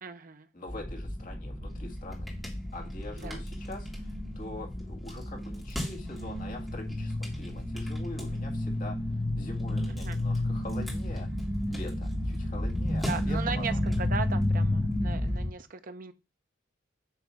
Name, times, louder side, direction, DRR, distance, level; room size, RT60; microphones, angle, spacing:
voice 1, 0.0-0.5 3.2-3.4 10.0-10.2 13.0-16.1, right 5 dB, 45° right, 0.7 m, -37 dB
voice 2, 0.5-2.3 2.7-9.0 9.4-11.3 11.7-13.8, left 2 dB, 45° left, 2.2 m, -44 dB
sound 1, 0.7-15.5, left 1 dB, ahead, 1.8 m, -31 dB
8.1 x 3.1 x 6.0 m
head